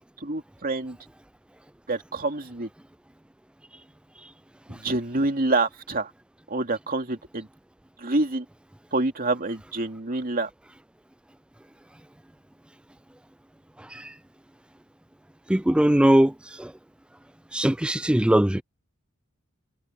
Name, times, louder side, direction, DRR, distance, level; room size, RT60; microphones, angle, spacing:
voice 1, 0.2-1.0 1.9-2.7 4.7-6.1 6.5-7.5 8.0-8.5 8.9-10.5, right 2 dB, 45° right, 2.6 m, -27 dB
voice 2, 15.5-16.3 16.6-16.7 17.5-18.6, right 1 dB, 5° right, 0.3 m, -20 dB
head